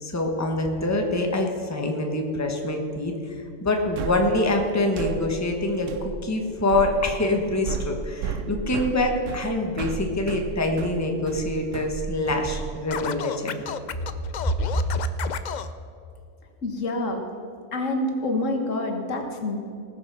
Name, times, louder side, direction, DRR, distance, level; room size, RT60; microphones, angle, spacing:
voice 1, 0.0-3.2 3.6-13.6, left 2 dB, 15° left, 2 dB, 1.1 m, -25 dB
sound 1, 4.0-13.1, right 6 dB, 80° right, 1.0 m, -34 dB
Scratching (performance technique), 12.9-15.7, left 7 dB, 55° left, 0.5 m, -32 dB
voice 2, 16.6-17.2 17.7-19.6, left 2 dB, 80° left, 3 dB, 1.8 m, -27 dB
19.0 x 6.8 x 5.9 m, 2.4 s
omnidirectional pair, 1.3 m